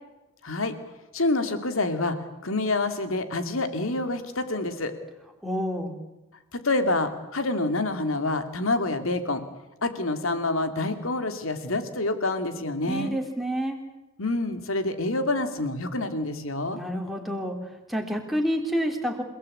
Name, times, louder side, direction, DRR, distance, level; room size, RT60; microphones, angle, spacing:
voice 1, 0.4-0.7 1.1-4.9 6.5-9.4 9.8-13.1 14.2-16.8, left 2 dB, 70° left, 9 dB, 2.7 m, -27 dB
voice 2, 5.4-5.9 12.9-13.8 16.7-17.6 17.9-19.2, equal, ahead, 2 dB, 3.1 m, -28 dB
29.0 x 17.5 x 8.7 m, 1.0 s
head